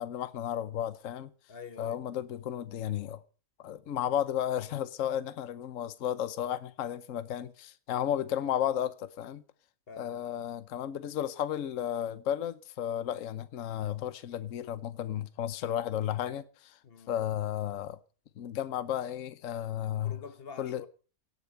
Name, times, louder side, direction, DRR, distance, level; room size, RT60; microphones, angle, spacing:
voice 1, 0.0-1.3 1.8-3.2 3.6-9.4 10.0-16.8 17.1-18.0 18.4-20.2 20.6-20.8, left 10 dB, 65° left, 1.2 m, -33 dB
voice 2, 1.5-2.0 9.9-10.4 16.8-17.1 20.0-20.9, left 5 dB, 45° left, 1.3 m, -47 dB
17.5 x 8.3 x 6.6 m
omnidirectional pair, 1.5 m